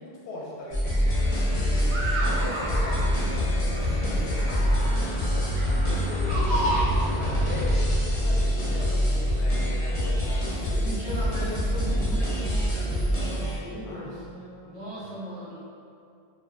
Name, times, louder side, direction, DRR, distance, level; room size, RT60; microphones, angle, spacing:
voice 1, 0.0-2.0 2.3-5.4 5.8-10.8 13.8-15.1, left 1 dB, 90° left, -4 dB, 0.8 m, -40 dB
sound 1, 0.7-13.6, equal, 40° left, 0.5 m, -25 dB
sound 2, 1.5-7.5, equal, 75° right, 0.8 m, -31 dB
voice 2, 10.6-14.2 14.6-15.6, right 1 dB, 40° right, -11 dB, 0.7 m, -37 dB
2.4 x 2.1 x 2.4 m, 2.4 s
omnidirectional pair, 1.1 m